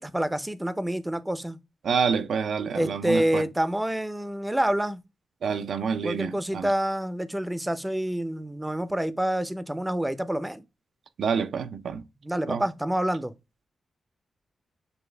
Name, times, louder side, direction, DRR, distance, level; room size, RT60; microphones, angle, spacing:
voice 1, 0.0-1.6 2.7-5.0 6.0-10.6 12.2-13.3, right 1 dB, 10° right, 0.5 m, -27 dB
voice 2, 1.8-3.4 5.4-6.7 11.2-12.0 12.5-12.6, right 6 dB, 80° right, 0.4 m, -27 dB
6.7 x 2.3 x 3.3 m
wide cardioid pair, 115°, 0 cm